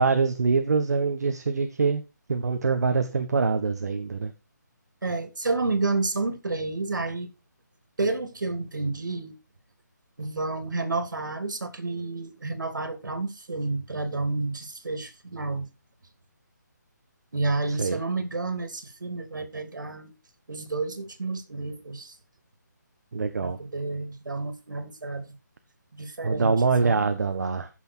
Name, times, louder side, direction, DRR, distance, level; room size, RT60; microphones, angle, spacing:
voice 1, 0.0-2.0 2.3-4.3 17.7-18.0 23.1-23.6 26.2-27.7, right 4 dB, 60° right, 1.5 m, -24 dB
voice 2, 5.0-7.3 8.0-9.3 10.2-15.7 17.3-20.1 20.5-22.1 23.4-25.3 25.9-26.6 26.8-27.1, right 3 dB, 90° right, 3.0 m, -30 dB
15.0 x 6.2 x 4.5 m
hypercardioid pair, 170°, 10 cm